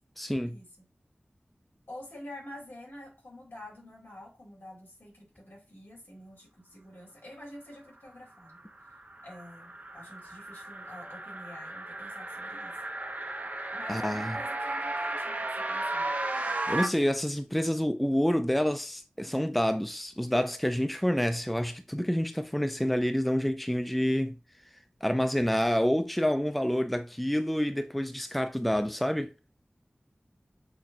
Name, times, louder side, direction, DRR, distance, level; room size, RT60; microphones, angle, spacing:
voice 1, 0.2-0.6 13.9-14.3 16.3-24.4 25.0-29.3, equal, ahead, 0.3 m, -28 dB
voice 2, 1.9-8.6 9.2-12.8 13.7-16.1, left 1 dB, 80° left, 2.2 m, -47 dB
sound 1, 8.5-16.9, right 2 dB, 45° right, 0.6 m, -35 dB
5.8 x 2.3 x 2.5 m
wide cardioid pair, 70°, 4 cm